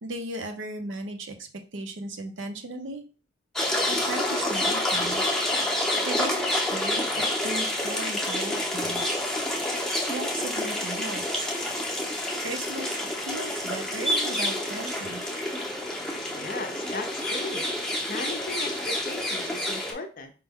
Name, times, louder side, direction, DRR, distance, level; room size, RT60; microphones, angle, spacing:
voice 1, 0.0-3.0 3.9-5.2 6.0-7.1 7.4-9.2 10.0-11.5 12.4-15.2, right 2 dB, 75° right, 4 dB, 0.6 m, -36 dB
sound 1, 3.6-19.9, left 1 dB, 5° left, 0.6 m, -28 dB
voice 2, 16.3-17.7 18.1-20.3, left 3 dB, 45° left, 6 dB, 0.5 m, -37 dB
4.5 x 2.1 x 3.5 m, 0.36 s
head